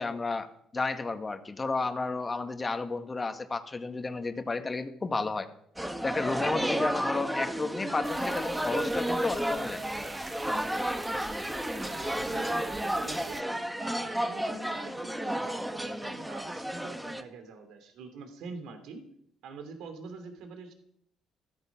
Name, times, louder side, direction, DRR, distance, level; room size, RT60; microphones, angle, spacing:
voice 1, 0.0-5.5 6.0-9.8, left 3 dB, 25° left, 7 dB, 1.9 m, -32 dB
sound 1, 5.8-17.2, right 1 dB, 5° right, 1.7 m, -32 dB
sound 2, 8.0-13.4, right 4 dB, 25° right, 0.7 m, -45 dB
voice 2, 11.9-13.4 13.8-19.1 19.4-20.7, right 4 dB, 80° right, 7 dB, 2.8 m, -45 dB
15.5 x 13.5 x 5.9 m, 0.69 s
cardioid pair, 90°, 0 cm